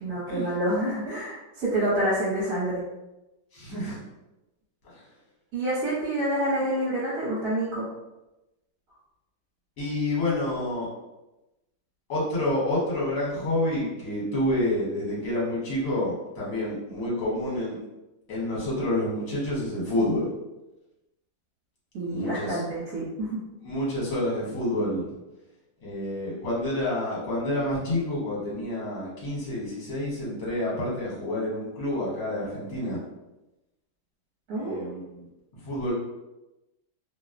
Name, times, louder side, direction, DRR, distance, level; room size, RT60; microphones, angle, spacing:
voice 1, 0.0-2.8 5.5-7.9 21.9-23.4 34.5-34.8, right 1 dB, 70° right, -7 dB, 1.2 m, -27 dB
voice 2, 3.5-4.0 4.9-5.0 9.8-10.9 12.1-17.8 18.3-20.3 22.1-22.6 23.6-25.1 25.8-33.0 34.6-35.2 35.6-35.9, left 1 dB, 60° left, -6 dB, 1.3 m, -28 dB
2.8 x 2.0 x 2.4 m, 0.99 s
omnidirectional pair, 1.8 m